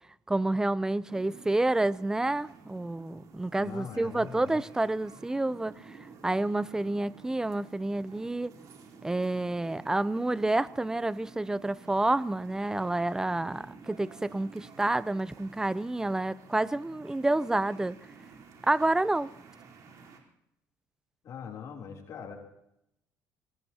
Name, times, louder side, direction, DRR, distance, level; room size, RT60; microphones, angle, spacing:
voice 1, 0.3-5.8 6.2-8.5 9.0-18.0 18.7-19.3, right 2 dB, 10° right, 0.5 m, -29 dB
sound 1, 1.1-20.2, right 5 dB, 55° right, 4.0 m, -52 dB
voice 2, 3.6-4.6 21.2-22.4, left 7 dB, 55° left, 3.3 m, -42 dB
24.0 x 20.0 x 2.9 m
cardioid pair, 115°, 7 cm